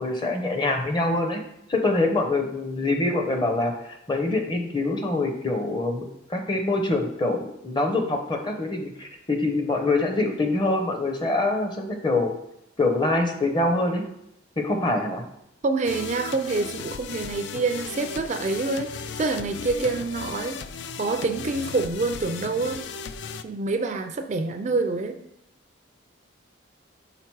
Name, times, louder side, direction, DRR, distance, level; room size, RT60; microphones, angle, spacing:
voice 1, 0.0-1.4 1.7-12.3 12.8-14.0 14.6-15.2, left 2 dB, 25° left, 4 dB, 0.7 m, -25 dB
voice 2, 15.6-20.6 21.0-22.9 23.4-25.2, right 3 dB, 35° right, 7 dB, 0.3 m, -27 dB
sound 1, 15.8-23.4, left 6 dB, 60° left, 0.3 m, -36 dB
5.7 x 3.7 x 4.6 m, 0.79 s
head